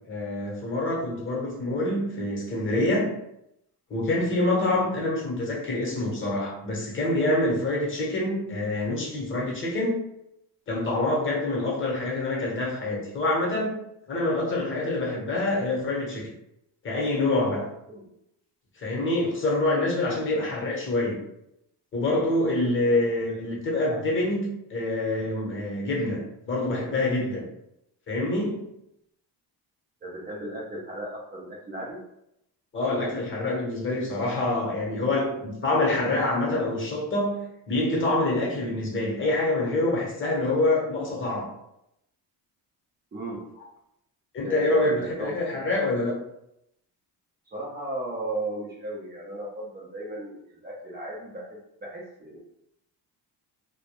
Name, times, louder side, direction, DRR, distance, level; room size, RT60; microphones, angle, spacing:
voice 1, 0.1-3.1 3.9-10.0 10.7-13.7 14.1-16.3 16.8-17.7 18.8-21.2 21.9-27.5 28.1-28.6 32.7-41.5 44.3-46.2, left 2 dB, 30° left, -2 dB, 0.8 m, -26 dB
voice 2, 30.0-32.0 43.1-43.4 44.4-45.4 47.5-52.4, right 1 dB, 25° right, -5 dB, 0.4 m, -36 dB
2.1 x 2.1 x 2.9 m, 0.80 s
cardioid pair, 125°, 41 cm